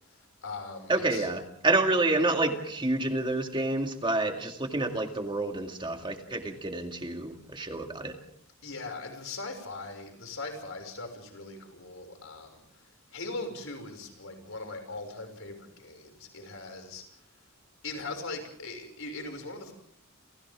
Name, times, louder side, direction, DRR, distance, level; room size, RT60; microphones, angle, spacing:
voice 1, 0.0-1.3 8.6-17.3 17.8-19.7, left 3 dB, 65° left, 5 dB, 6.2 m, -40 dB
voice 2, 0.9-8.2, right 2 dB, 25° right, 4 dB, 2.2 m, -28 dB
29.5 x 29.0 x 3.7 m, 0.64 s
head